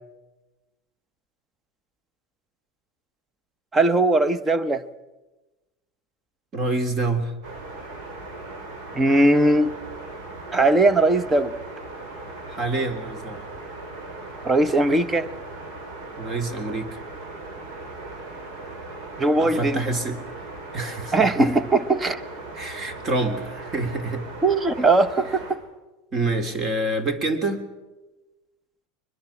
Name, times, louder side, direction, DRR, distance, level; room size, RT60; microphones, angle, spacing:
voice 1, 3.7-4.8 8.9-9.7 10.5-11.5 14.4-15.3 19.2-19.8 21.1-22.2 24.4-25.6, right 2 dB, 15° right, 1.1 m, -19 dB
voice 2, 6.5-7.3 12.5-13.4 16.2-17.0 19.4-20.2 20.7-21.6 22.5-24.2 26.1-27.7, right 2 dB, 30° right, 3.3 m, -27 dB
sound 1, 7.4-25.5, right 2 dB, 60° right, 6.4 m, -38 dB
23.5 x 21.0 x 7.3 m
supercardioid pair, 135°, 0 cm